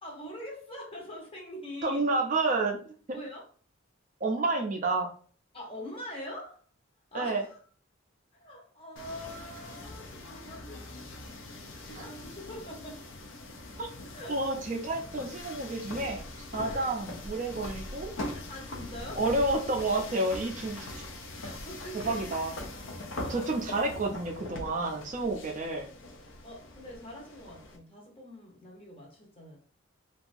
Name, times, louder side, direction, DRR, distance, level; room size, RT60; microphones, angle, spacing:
voice 1, 0.0-2.0 3.1-3.4 5.5-6.6 7.1-7.6 8.4-11.2 11.5-13.1 14.1-14.5 16.7-16.9 18.3-19.3 21.4-22.3 23.1-23.5 26.4-29.6, left 1 dB, 25° left, -2 dB, 0.7 m, -44 dB
voice 2, 1.8-2.8 4.2-5.1 7.1-7.4 11.9-12.1 13.8-13.9 14.3-16.2 16.5-18.1 19.2-20.9 22.0-22.5 23.3-25.9, right 2 dB, 40° right, 2 dB, 0.3 m, -30 dB
sound 1, 9.0-27.8, left 2 dB, 70° left, 0.5 m, -42 dB
2.7 x 2.3 x 2.5 m, 0.43 s
head